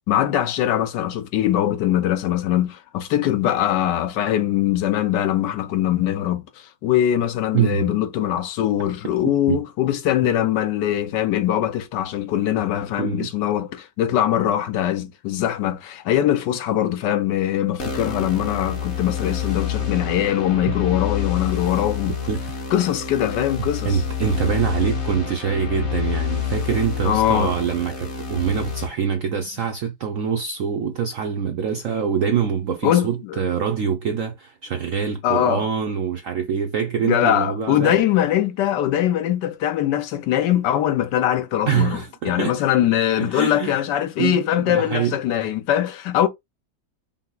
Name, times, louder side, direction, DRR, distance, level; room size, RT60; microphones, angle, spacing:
voice 1, 0.1-22.1 22.7-24.0 27.0-27.5 32.8-33.4 35.2-35.7 37.0-46.3, left 11 dB, 75° left, 1.2 m, -22 dB
voice 2, 7.5-7.9 9.5-9.6 13.0-13.3 22.3-22.4 23.8-38.0 41.7-42.6 43.2-43.8 44.2-45.2, right 7 dB, 70° right, 0.7 m, -24 dB
sound 1, 17.8-28.9, left 7 dB, 40° left, 1.3 m, -28 dB
5.5 x 2.1 x 3.8 m
omnidirectional pair, 2.0 m